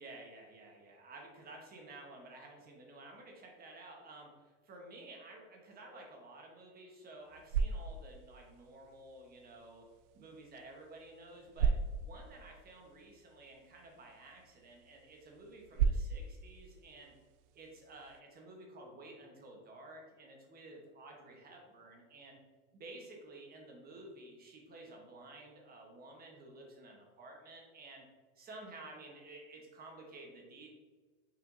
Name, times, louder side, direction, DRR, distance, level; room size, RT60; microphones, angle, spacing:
voice 1, 0.0-9.9 10.1-17.2 17.5-22.4 22.7-28.1 28.4-30.7, right 2 dB, 25° right, 1 dB, 1.0 m, -53 dB
sound 1, 7.1-18.2, right 6 dB, 65° right, 0.5 m, -39 dB
5.7 x 3.4 x 2.6 m, 1.4 s
supercardioid pair, 135°, 38 cm